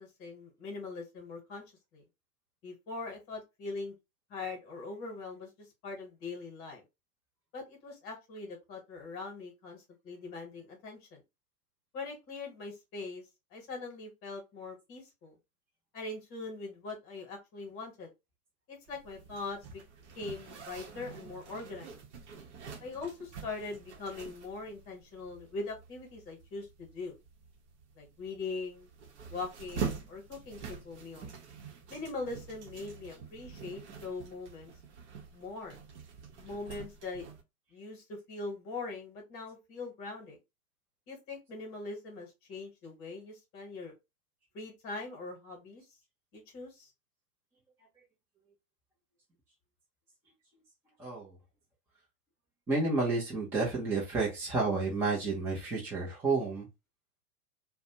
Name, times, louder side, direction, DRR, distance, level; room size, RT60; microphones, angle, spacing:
voice 1, 0.0-1.6 1.9-2.0 2.6-3.9 4.3-6.8 7.5-11.2 11.9-13.2 13.5-15.3 15.9-18.1 18.7-19.8 20.2-22.0 22.8-27.2 28.0-28.9 29.3-31.3 31.9-34.7 35.3-35.8 36.4-37.3 37.7-40.4 41.1-43.9 44.5-45.8 46.3-46.9, left 3 dB, 30° left, 1.1 m, -42 dB
Zipper (clothing), 18.9-37.4, right 6 dB, 50° right, 0.8 m, -46 dB
voice 2, 51.0-51.4 52.7-56.7, right 3 dB, 5° right, 0.4 m, -30 dB
2.4 x 2.1 x 2.7 m
hypercardioid pair, 110°, 44 cm